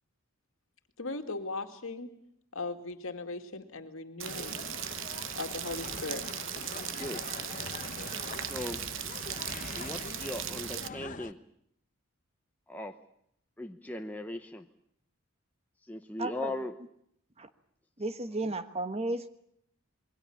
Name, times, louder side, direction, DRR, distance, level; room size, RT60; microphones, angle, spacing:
voice 1, 1.0-2.1 2.5-4.6 5.3-6.2, left 3 dB, 65° left, 6 dB, 2.3 m, -38 dB
sound 1, 4.2-11.3, left 3 dB, 35° left, 0.9 m, -42 dB
Rain, 4.2-10.9, right 11 dB, 60° right, 0.9 m, -38 dB
voice 2, 6.9-7.2 8.5-8.8 9.7-11.4 12.7-13.0 13.6-14.7 15.9-16.7, left 1 dB, 5° left, 4 dB, 0.9 m, -38 dB
voice 3, 16.2-16.5 17.4-17.5 18.0-19.3, right 2 dB, 30° right, 10 dB, 1.2 m, -34 dB
27.0 x 22.0 x 7.2 m, 0.71 s
head